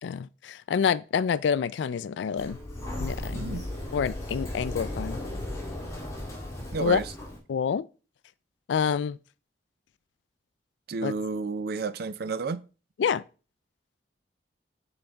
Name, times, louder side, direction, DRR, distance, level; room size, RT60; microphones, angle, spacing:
voice 1, 0.0-2.6 3.0-3.6 3.9-5.2 6.8-7.0 7.5-7.9 8.7-9.2 11.0-11.1 13.0-13.2, left 7 dB, 85° left, 0.3 m, -27 dB
Sliding door, 2.4-7.4, left 1 dB, 15° left, 1.8 m, -36 dB
voice 2, 3.3-3.7 6.7-7.1 10.9-12.6, right 4 dB, 60° right, 0.4 m, -31 dB
7.1 x 4.0 x 3.4 m
head